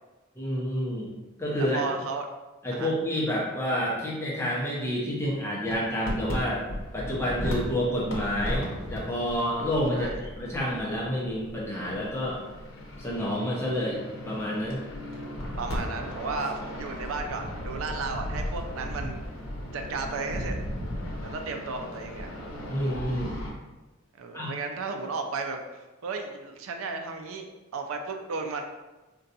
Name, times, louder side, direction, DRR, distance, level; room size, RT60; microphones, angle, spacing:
voice 1, 0.4-1.1 1.4-1.8 2.6-6.7 6.9-8.6 8.9-12.4 13.0-14.8 22.7-23.4 24.3-24.5, equal, 15° left, -4 dB, 0.5 m, -29 dB
voice 2, 1.6-2.3 2.7-2.9 9.9-10.2 15.6-19.2 19.7-20.6 21.2-22.4 24.2-28.6, right 4 dB, 90° right, 4 dB, 0.4 m, -34 dB
sound 1, 5.7-23.5, equal, 90° left, 0.7 m, -36 dB
3.7 x 2.2 x 2.6 m, 1.1 s
head